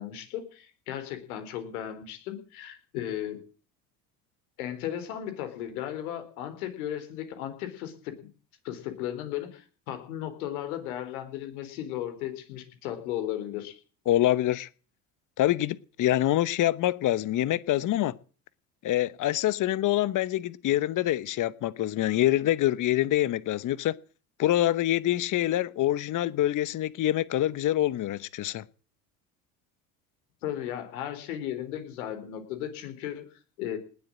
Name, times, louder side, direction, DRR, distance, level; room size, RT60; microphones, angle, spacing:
voice 1, 0.0-3.4 4.6-8.3 8.6-13.8 30.4-33.8, left 11 dB, 80° left, 4.0 m, -35 dB
voice 2, 14.1-14.7 15.4-18.1 18.8-23.9 24.4-28.6, left 13 dB, 45° left, 1.1 m, -25 dB
19.5 x 7.9 x 8.8 m
hypercardioid pair, 75°, 43 cm